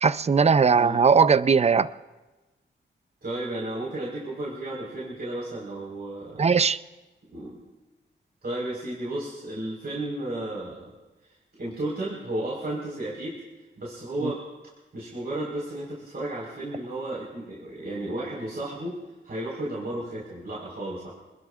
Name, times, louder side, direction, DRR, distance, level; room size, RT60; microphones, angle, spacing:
voice 1, 0.0-1.9 6.4-6.8 14.2-14.3, right 5 dB, 35° right, 0.5 m, -19 dB
voice 2, 3.2-6.4 7.3-7.6 8.4-10.9 11.2-13.3 13.8-14.5 14.9-19.0 19.2-21.1, right 1 dB, 55° right, 4.6 m, -33 dB
27.5 x 20.5 x 2.5 m
wide cardioid pair, 100°, 20 cm